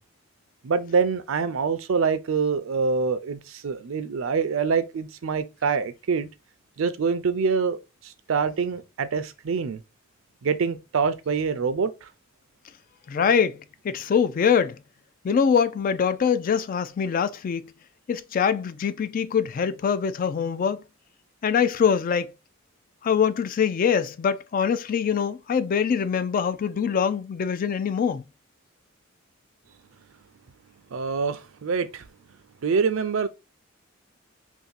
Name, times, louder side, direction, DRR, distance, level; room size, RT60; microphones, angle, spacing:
voice 1, 0.6-6.3 6.8-7.8 8.3-9.8 10.4-11.9 30.9-32.0 32.6-33.3, right 5 dB, 75° right, 0.5 m, -25 dB
voice 2, 13.1-13.6 13.8-14.8 15.2-17.6 18.1-20.8 21.4-22.3 23.0-28.2, left 7 dB, 45° left, 0.3 m, -23 dB
2.7 x 2.5 x 3.8 m
head